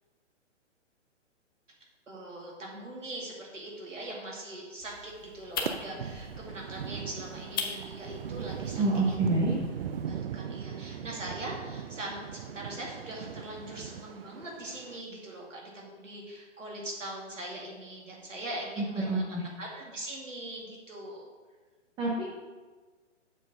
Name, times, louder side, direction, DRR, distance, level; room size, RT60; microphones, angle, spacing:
voice 1, 2.1-9.2 10.1-19.3 19.6-21.3, right 1 dB, 80° right, -2 dB, 2.4 m, -41 dB
sound 1, 4.8-10.1, left 5 dB, 20° left, 0.4 m, -41 dB
sound 2, 5.7-15.0, right 7 dB, 50° right, 0.5 m, -39 dB
voice 2, 8.8-9.5 19.1-19.4 22.0-22.2, right 2 dB, 10° right, -4 dB, 0.8 m, -27 dB
7.2 x 4.6 x 5.4 m, 1.4 s
figure-of-eight pair, 130°, 37 cm